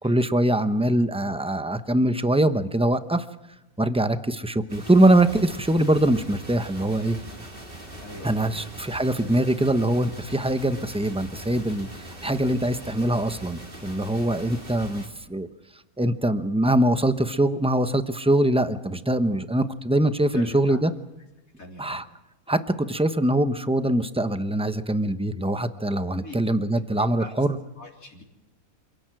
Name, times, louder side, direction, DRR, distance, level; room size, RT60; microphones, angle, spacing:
voice 1, 0.0-3.3 3.8-7.2 8.2-15.5 16.0-20.9 21.8-22.0 22.5-27.6, right 1 dB, 5° right, 10 dB, 0.8 m, -23 dB
sound 1, 4.7-15.1, right 1 dB, 35° right, 4.0 m, -41 dB
voice 2, 8.0-8.6 14.3-14.5 20.3-20.8 21.6-22.0 26.1-26.4 26.9-27.3 27.8-28.2, left 2 dB, 65° left, 0 dB, 4.0 m, -42 dB
28.0 x 17.5 x 7.7 m, 1.0 s
omnidirectional pair, 1.6 m